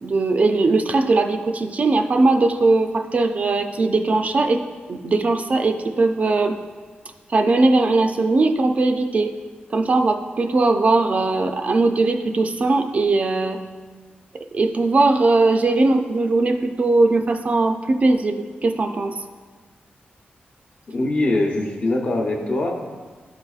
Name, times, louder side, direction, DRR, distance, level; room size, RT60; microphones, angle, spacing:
voice 1, 0.0-4.6 4.9-6.6 7.3-9.3 9.7-13.6 14.5-19.2, right 3 dB, 40° right, 5 dB, 0.3 m, -19 dB
voice 2, 20.9-22.7, left 2 dB, 45° left, 1 dB, 0.8 m, -22 dB
11.5 x 4.0 x 2.4 m, 1.4 s
wide cardioid pair, 145°, 4 cm